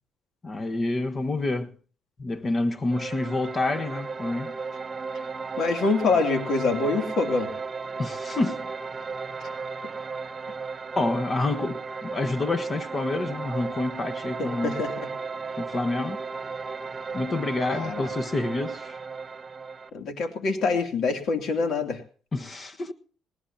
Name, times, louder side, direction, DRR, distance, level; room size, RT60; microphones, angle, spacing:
voice 1, 0.4-1.7 2.2-4.6 8.0-8.7 10.9-14.8 15.6-16.2 17.1-19.0 22.3-22.9, left 2 dB, 35° left, 1.4 m, -28 dB
sound 1, 2.9-19.9, right 4 dB, 35° right, 1.5 m, -35 dB
voice 2, 5.6-7.5 9.4-9.5 14.4-15.1 17.7-18.1 19.9-22.0, left 3 dB, 70° left, 2.9 m, -25 dB
19.5 x 19.0 x 2.9 m
cardioid pair, 90°, 0 cm